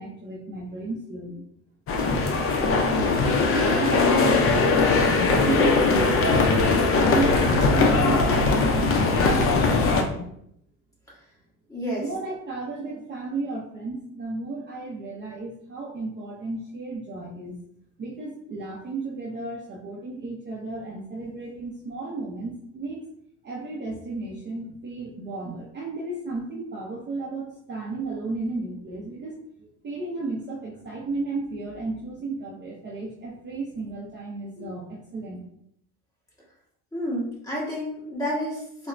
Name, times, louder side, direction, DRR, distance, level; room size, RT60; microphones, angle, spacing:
voice 1, 0.0-1.4 2.8-6.8 7.1-10.2 12.0-17.6 18.0-23.0 23.4-35.5, right 3 dB, 30° right, -4 dB, 0.5 m, -33 dB
sound 1, 1.9-10.0, left 3 dB, 40° left, 0.4 m, -20 dB
voice 2, 11.7-12.0 36.9-38.9, equal, 10° left, -6 dB, 1.2 m, -30 dB
4.1 x 2.1 x 2.4 m, 0.73 s
cardioid pair, 130°, 36 cm